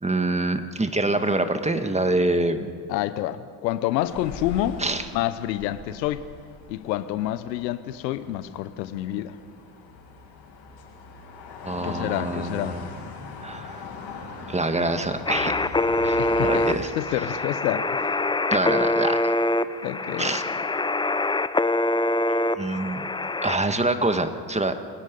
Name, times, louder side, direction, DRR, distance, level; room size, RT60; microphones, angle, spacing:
voice 1, 0.0-2.7 4.8-5.0 11.6-12.9 13.4-13.8 14.5-15.5 16.0-16.9 18.5-19.3 20.2-20.4 22.6-23.1 23.4-24.7, right 2 dB, 15° right, 8 dB, 1.8 m, -25 dB
voice 2, 2.9-4.8 5.1-6.2 6.7-9.4 11.8-12.8 16.2-18.1 19.8-20.4, left 13 dB, 85° left, 14 dB, 0.9 m, -28 dB
sound 1, 4.0-16.8, left 4 dB, 60° left, 6.9 m, -40 dB
sound 2, 15.3-23.6, left 2 dB, 10° left, 0.6 m, -24 dB
29.5 x 19.5 x 5.4 m, 2.2 s
hypercardioid pair, 65°, 49 cm